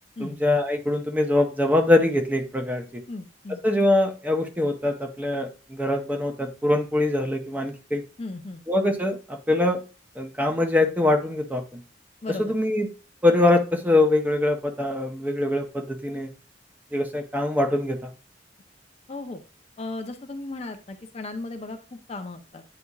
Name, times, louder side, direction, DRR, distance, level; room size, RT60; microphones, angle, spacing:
voice 1, 0.2-3.0 3.6-8.0 8.7-9.8 10.2-11.8 12.4-12.9 13.2-16.3 16.9-18.1, left 2 dB, 10° right, 5 dB, 0.7 m, -23 dB
voice 2, 3.1-3.6 8.2-8.6 12.2-12.5 19.1-19.4 19.8-22.6, left 2 dB, 35° left, 6 dB, 0.6 m, -36 dB
9.6 x 4.2 x 2.3 m, 0.35 s
head